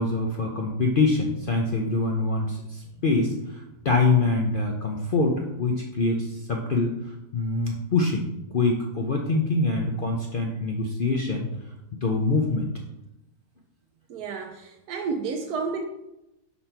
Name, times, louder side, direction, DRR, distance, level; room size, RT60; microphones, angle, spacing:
voice 1, 0.0-11.5 11.9-12.7, left 3 dB, 60° left, 0 dB, 0.5 m, -25 dB
voice 2, 14.1-15.9, right 4 dB, 80° right, 3 dB, 1.2 m, -31 dB
4.4 x 4.2 x 5.6 m, 0.89 s
omnidirectional pair, 1.6 m